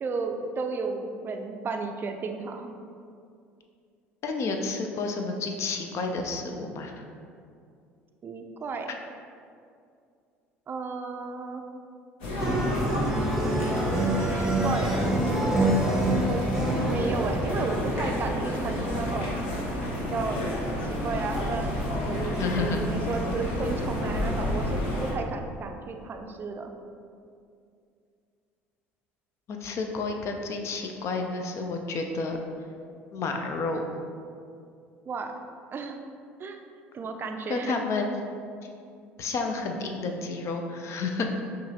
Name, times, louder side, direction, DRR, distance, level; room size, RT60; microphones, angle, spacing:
voice 1, 0.0-2.8 8.2-8.9 10.7-11.6 13.7-15.8 16.2-16.5 16.8-19.4 20.0-20.4 20.8-26.7 35.1-35.3 35.7-36.0 36.4-36.6 36.9-37.8, right 4 dB, 35° right, 5 dB, 0.4 m, -33 dB
voice 2, 4.2-7.0 22.4-22.9 29.5-32.4 33.1-33.8 37.5-38.1 39.2-41.3, left 3 dB, 50° left, 4 dB, 0.5 m, -30 dB
sound 1, 12.2-25.1, left 1 dB, 80° left, 1.0 m, -30 dB
sound 2, 12.4-12.7 13.5-17.0, right 1 dB, 20° left, 1.1 m, -41 dB
sound 3, 12.4-17.8, right 1 dB, 5° right, 0.7 m, -27 dB
5.4 x 2.5 x 2.8 m, 2.4 s
hypercardioid pair, 70°, 6 cm